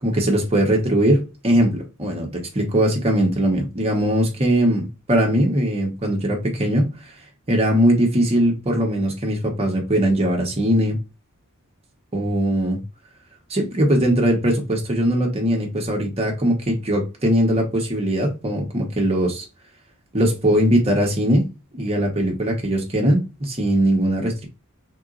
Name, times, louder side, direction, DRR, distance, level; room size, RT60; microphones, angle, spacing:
voice 1, 0.0-6.9 7.5-11.0 12.1-12.8 13.5-19.4 20.1-21.5 21.7-24.5, right 1 dB, 30° right, 1.1 m, -20 dB
4.6 x 3.8 x 2.5 m
head